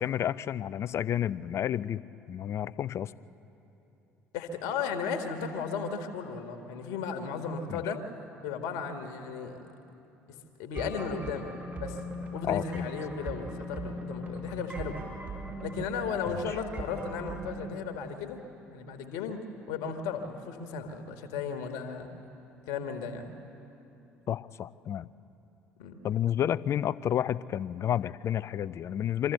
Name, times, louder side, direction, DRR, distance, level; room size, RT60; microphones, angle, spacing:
voice 1, 0.0-2.0 2.3-3.1 7.7-7.8 12.4-12.9 16.3-16.4 24.3-25.1 26.0-29.3, left 10 dB, 45° left, 17 dB, 0.5 m, -30 dB
voice 2, 4.3-8.0 8.4-9.6 10.6-11.5 11.8-12.0 12.3-15.0 15.6-18.4 18.7-22.1 22.7-23.3 25.8-25.9, left 5 dB, 65° left, 6 dB, 1.6 m, -35 dB
sound 1, 10.7-17.7, right 1 dB, 30° right, 5.0 m, -39 dB
24.5 x 14.0 x 8.0 m, 2.9 s
figure-of-eight pair, 55°, 7 cm